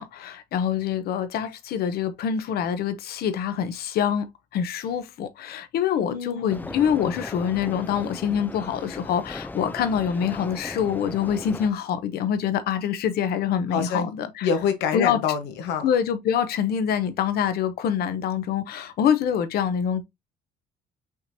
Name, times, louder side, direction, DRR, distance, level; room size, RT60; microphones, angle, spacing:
voice 1, 0.0-4.3 4.5-14.5 14.9-15.2 15.8-20.0, left 8 dB, 65° left, 0.9 m, -25 dB
voice 2, 6.0-6.8 13.7-14.1 14.4-15.9, left 7 dB, 90° left, 1.1 m, -26 dB
sound 1, 6.5-11.7, left 2 dB, 10° left, 0.5 m, -38 dB
5.5 x 3.3 x 2.7 m
cardioid pair, 110°, 17 cm